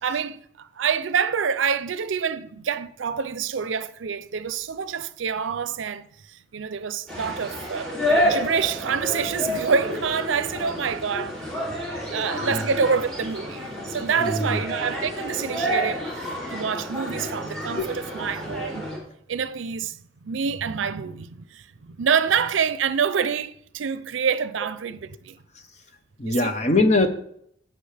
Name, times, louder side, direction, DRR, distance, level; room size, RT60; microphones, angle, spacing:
voice 1, 0.0-11.4 12.1-18.9 19.3-25.4 26.2-26.6, right 6 dB, 90° right, 0.5 m, -27 dB
sound 1, 7.1-19.0, equal, 5° left, 3.0 m, -29 dB
voice 2, 14.2-14.6 17.8-17.9 26.2-27.1, left 2 dB, 35° left, 0.9 m, -22 dB
16.0 x 5.9 x 3.4 m
head